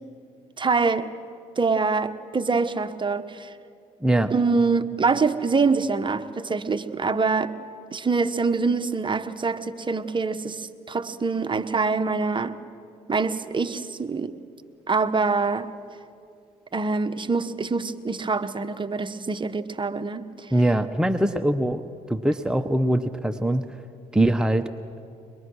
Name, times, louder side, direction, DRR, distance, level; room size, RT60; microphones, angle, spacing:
voice 1, 0.6-1.1 1.6-3.5 4.3-7.5 7.9-12.5 13.1-14.3 14.9-15.7 16.7-20.5, right 4 dB, 30° right, 10 dB, 1.1 m, -25 dB
voice 2, 4.0-4.3 20.5-21.8 22.1-23.7 24.1-24.7, right 1 dB, 5° right, 8 dB, 0.9 m, -22 dB
23.0 x 22.0 x 6.4 m, 2.4 s
supercardioid pair, 65°, 16 cm